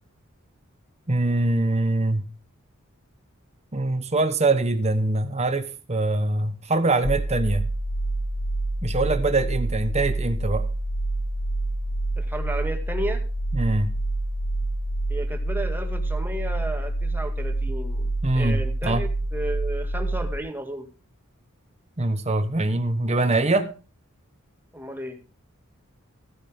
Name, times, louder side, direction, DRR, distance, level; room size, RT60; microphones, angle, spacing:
voice 1, 1.1-2.3 3.7-7.6 8.8-10.7 13.5-13.9 18.2-19.0 22.0-23.7, right 2 dB, 30° right, 1.2 m, -23 dB
sound 1, 7.0-20.4, right 2 dB, 70° left, 1.4 m, -27 dB
voice 2, 12.2-13.2 15.1-20.9 24.7-25.2, right 1 dB, 10° right, 2.1 m, -33 dB
15.0 x 9.9 x 3.7 m
head